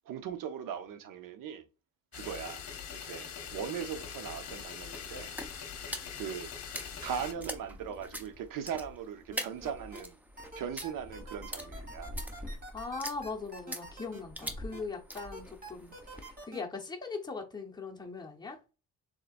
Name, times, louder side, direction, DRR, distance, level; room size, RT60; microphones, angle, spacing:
voice 1, 0.1-1.6 2.1-2.6 2.9-5.3 6.2-6.5 7.0-10.2 10.5-12.1, right 8 dB, 70° right, 0.7 m, -39 dB
sound 1, 2.1-7.3, left 7 dB, 50° left, 1.0 m, -43 dB
sound 2, 3.4-16.4, equal, 5° right, 0.5 m, -44 dB
sound 3, 9.3-10.0 10.4-14.8 15.2-16.6, right 2 dB, 25° right, 1.9 m, -46 dB
voice 2, 12.7-18.6, left 4 dB, 10° left, 1.0 m, -40 dB
6.7 x 2.9 x 2.5 m
cardioid pair, 135°, 34 cm